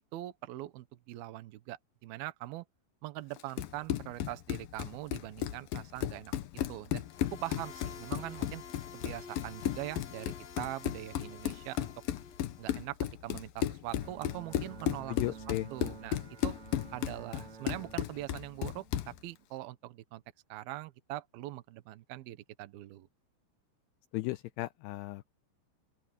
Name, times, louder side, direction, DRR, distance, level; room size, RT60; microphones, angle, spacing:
voice 1, 0.1-2.7 3.0-6.3 6.7-7.0 7.3-8.6 8.9-11.9 12.6-13.0 13.2-15.2 15.7-16.6 16.9-20.2 20.5-23.1, right 16 dB, 70° right, 2.5 m, -42 dB
Run, 3.4-19.2, left 12 dB, 75° left, 2.2 m, -35 dB
sound 1, 7.0-12.8, left 6 dB, 50° left, 2.2 m, -50 dB
Bowed string instrument, 14.0-19.4, right 7 dB, 45° right, 3.4 m, -51 dB
voice 2, 15.1-15.7 24.1-25.3, left 19 dB, 90° left, 2.4 m, -35 dB
open air
omnidirectional pair, 5.3 m